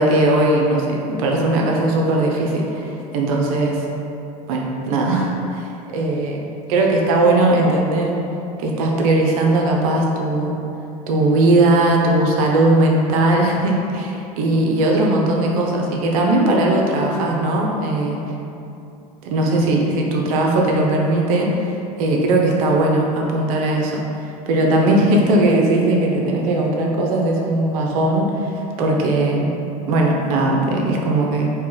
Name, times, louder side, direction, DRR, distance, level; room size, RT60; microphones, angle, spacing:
voice 1, 0.0-3.8 4.5-6.4 6.7-8.2 8.6-10.5 11.1-18.2 19.2-24.0 24.5-28.5 28.8-29.5 29.9-31.5, right 2 dB, 65° right, -1 dB, 0.6 m, -18 dB
3.0 x 2.9 x 3.7 m, 2.7 s
hypercardioid pair, 80°, 20 cm